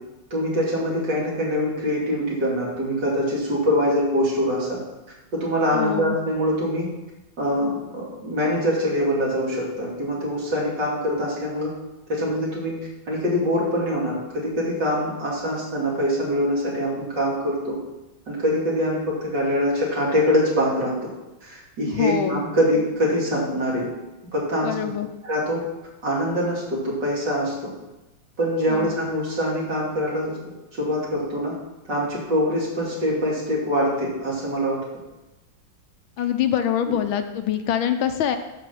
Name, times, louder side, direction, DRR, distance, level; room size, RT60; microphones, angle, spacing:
voice 1, 0.3-4.8 5.3-6.9 7.4-11.7 12.1-12.8 13.1-17.8 18.3-20.9 21.4-23.9 24.3-24.7 25.2-25.6 26.0-27.7 28.4-30.4 30.7-31.5 31.9-34.8, equal, 60° right, -5 dB, 3.3 m, -24 dB
voice 2, 5.7-6.2 21.9-22.4 24.6-25.1 28.7-28.9 36.2-38.4, left 10 dB, 80° left, 8 dB, 1.5 m, -24 dB
10.5 x 4.1 x 7.0 m, 1.0 s
omnidirectional pair, 2.2 m